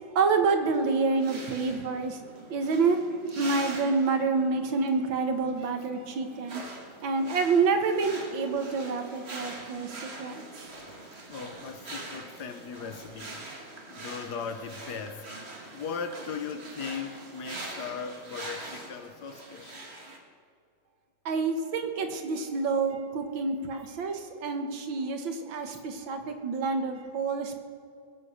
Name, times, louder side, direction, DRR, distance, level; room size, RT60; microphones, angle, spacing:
voice 1, 0.2-2.2 2.5-3.0 3.4-6.6 7.0-10.4 21.3-27.6, right 4 dB, 85° right, 2.0 m, -28 dB
sound 1, 0.9-20.2, right 2 dB, 35° right, 1.8 m, -43 dB
voice 2, 11.3-13.6 13.9-15.3 15.7-19.8 25.7-25.8, left 6 dB, 65° left, 1.4 m, -38 dB
21.0 x 8.3 x 6.5 m
omnidirectional pair, 2.1 m